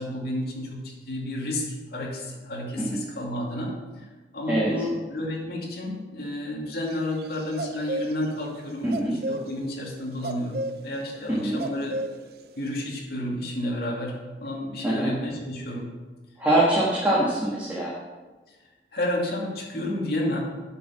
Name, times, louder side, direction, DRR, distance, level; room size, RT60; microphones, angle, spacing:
voice 1, 0.0-1.7 1.9-4.1 4.3-8.9 9.3-12.0 12.6-15.9 18.5-18.6 18.9-20.4, left 1 dB, 60° left, -3 dB, 2.5 m, -31 dB
voice 2, 4.5-4.9 8.8-9.2 11.3-11.6 14.8-15.1 16.4-18.0, right 1 dB, 10° right, -6 dB, 1.6 m, -24 dB
sound 1, 6.9-8.6 8.9-12.8, right 1 dB, 60° right, 0.6 m, -33 dB
9.6 x 6.1 x 5.8 m, 1.2 s
head